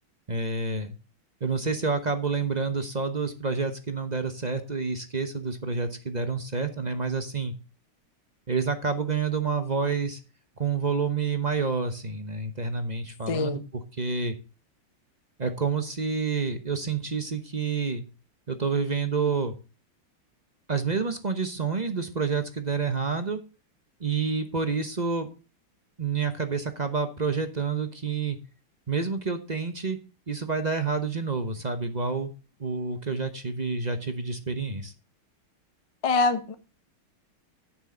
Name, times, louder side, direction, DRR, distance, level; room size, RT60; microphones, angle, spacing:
voice 1, 0.3-0.9 1.4-7.5 8.5-10.2 10.6-14.3 15.4-18.0 18.5-19.5 20.7-23.4 24.0-25.3 26.0-28.4 28.9-30.0 30.3-32.3 32.6-34.9, right 5 dB, 35° right, 0.7 m, -28 dB
voice 2, 13.3-13.6 36.0-36.5, left 4 dB, 25° left, 0.7 m, -24 dB
10.5 x 9.1 x 3.8 m
omnidirectional pair, 2.3 m